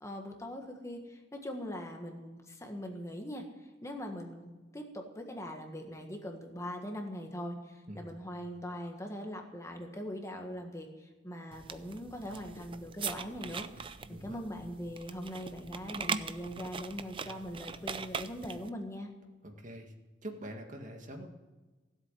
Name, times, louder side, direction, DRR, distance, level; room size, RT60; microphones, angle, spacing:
voice 1, 0.0-19.1, equal, 15° left, 3 dB, 1.5 m, -41 dB
sound 1, 11.5-18.7, right 5 dB, 30° right, 0.5 m, -41 dB
voice 2, 19.4-19.9 20.2-21.3, right 1 dB, 45° right, 3 dB, 1.9 m, -44 dB
17.0 x 7.9 x 9.1 m, 1.2 s
head